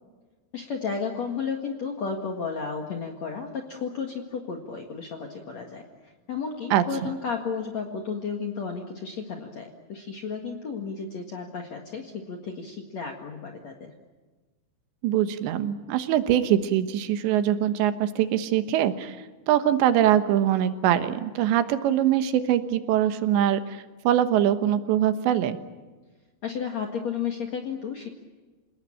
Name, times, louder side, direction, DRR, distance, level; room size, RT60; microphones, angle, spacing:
voice 1, 0.5-13.9 26.4-28.1, left 5 dB, 50° left, 2 dB, 2.3 m, -33 dB
voice 2, 15.0-19.2 19.5-25.6, right 11 dB, 80° right, 10 dB, 3.5 m, -23 dB
28.0 x 18.5 x 8.9 m, 1.3 s
omnidirectional pair, 5.2 m